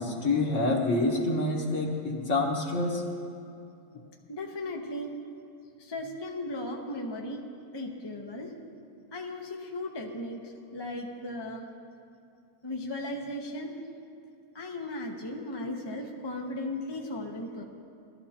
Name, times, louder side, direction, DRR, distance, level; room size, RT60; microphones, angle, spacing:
voice 1, 0.0-3.0, left 2 dB, 55° left, -1 dB, 1.7 m, -27 dB
voice 2, 4.3-5.2 5.8-7.4 7.7-8.5 9.1-11.6 12.6-13.7 14.5-17.6, left 1 dB, 20° left, 0 dB, 0.8 m, -36 dB
19.5 x 12.5 x 2.9 m, 2.6 s
omnidirectional pair, 1.6 m